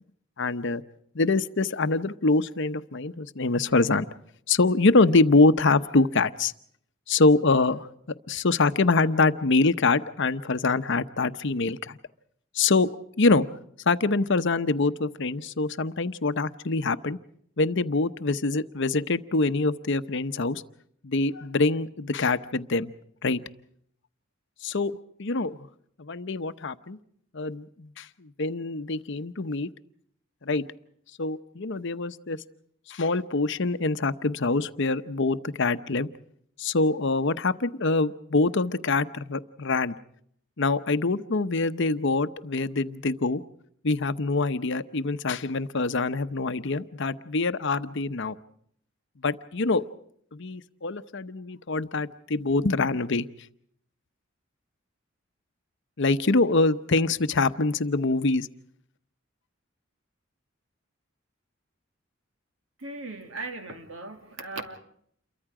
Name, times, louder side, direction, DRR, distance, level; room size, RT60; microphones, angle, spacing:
voice 1, 0.4-0.8 1.1-4.1 4.5-6.5 7.1-7.9 8.3-12.0 12.5-12.9 13.2-13.5 13.9-17.2 17.6-20.6 21.0-22.9 23.2-23.4 24.6-24.9 25.2-25.6 26.0-27.0 27.3-29.7 30.4-30.6 31.2-32.4 32.9-36.1 36.6-40.0 40.6-43.4 43.8-48.4 49.2-49.8 50.3-53.3 56.0-58.5, left 3 dB, 65° left, 0.9 m, -24 dB
voice 2, 62.8-64.8, right 3 dB, 80° right, 2.4 m, -38 dB
29.0 x 23.0 x 4.9 m
head